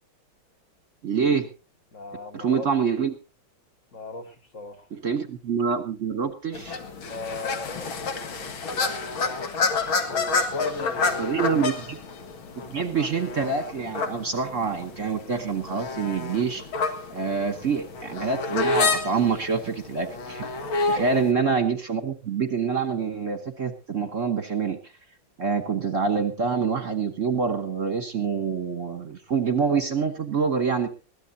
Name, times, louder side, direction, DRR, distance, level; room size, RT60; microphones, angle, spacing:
voice 1, 1.0-1.5 2.3-3.1 4.9-6.8 11.2-12.0 12.7-16.6 17.1-20.4 20.9-24.8 25.4-30.9, right 5 dB, 45° right, 1.3 m, -26 dB
voice 2, 1.9-2.7 3.9-4.9 7.1-8.9 10.1-11.4 21.0-21.2, left 2 dB, 40° left, 1.7 m, -37 dB
sound 1, 6.5-21.3, left 4 dB, 75° left, 2.4 m, -29 dB
21.5 x 16.0 x 2.7 m
omnidirectional pair, 2.3 m